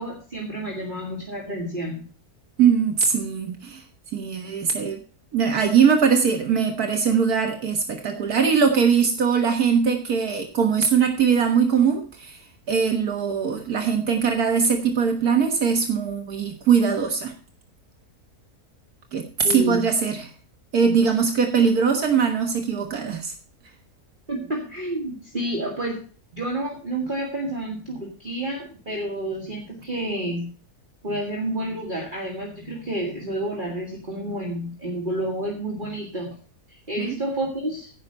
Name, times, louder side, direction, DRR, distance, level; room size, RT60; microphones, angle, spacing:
voice 1, 0.0-2.0 19.4-19.9 24.3-26.0 26.3-30.5 31.0-36.4 36.7-37.9, right 1 dB, 30° right, -1 dB, 2.2 m, -30 dB
voice 2, 2.6-3.8 4.1-5.0 5.3-12.4 12.7-17.3 19.1-20.3 20.7-23.3 37.0-37.1, right 6 dB, 80° right, 4 dB, 1.9 m, -21 dB
15.5 x 5.8 x 5.4 m, 0.39 s
omnidirectional pair, 1.6 m